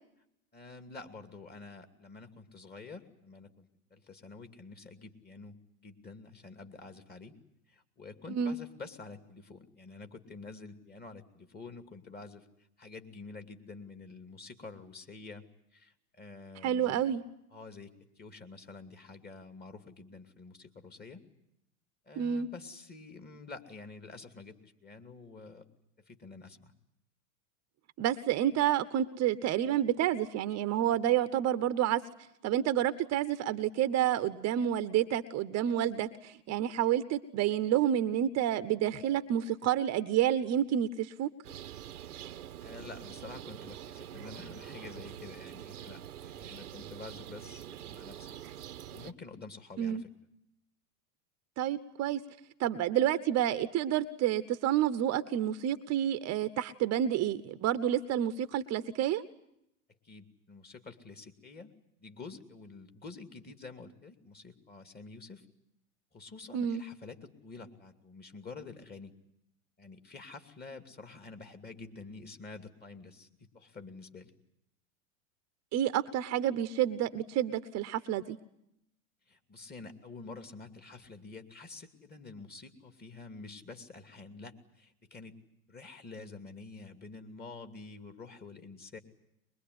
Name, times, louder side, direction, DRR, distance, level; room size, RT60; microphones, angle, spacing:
voice 1, 0.5-7.3 7.7-12.5 12.8-15.4 15.7-17.0 17.5-21.2 22.0-25.7 26.1-26.7 42.6-48.4 48.9-50.1 60.0-61.7 62.0-65.5 66.1-69.1 69.8-73.3 73.5-74.3 79.3-85.4 85.7-89.0, left 3 dB, 20° left, 7 dB, 2.7 m, -48 dB
voice 2, 16.6-17.2 22.2-22.5 28.0-32.0 32.4-41.3 49.8-50.0 51.6-52.2 52.6-59.2 66.5-66.8 75.7-78.4, right 11 dB, 35° right, 13 dB, 1.0 m, -29 dB
sound 1, 41.4-49.1, right 11 dB, 85° right, 1.2 m, -45 dB
23.0 x 22.0 x 9.6 m, 0.80 s
hypercardioid pair, 105°, 44 cm